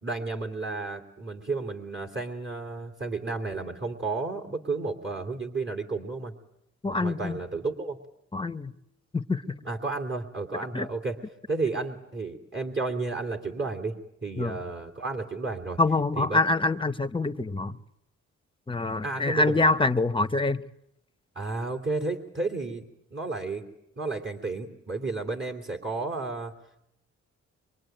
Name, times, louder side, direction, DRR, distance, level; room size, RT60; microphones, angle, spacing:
voice 1, 0.0-6.3 6.8-8.0 9.7-11.2 11.5-15.8 16.2-16.4 19.0-19.7 21.3-22.9 23.1-23.6 24.0-26.5, right 3 dB, 40° right, 2.8 m, -32 dB
voice 2, 6.8-7.4 8.3-8.7 9.1-9.6 10.7-10.9 14.4-14.6 15.8-17.8 18.7-20.6, left 2 dB, 15° left, 0.9 m, -25 dB
24.5 x 24.0 x 9.1 m
cardioid pair, 85°, 29 cm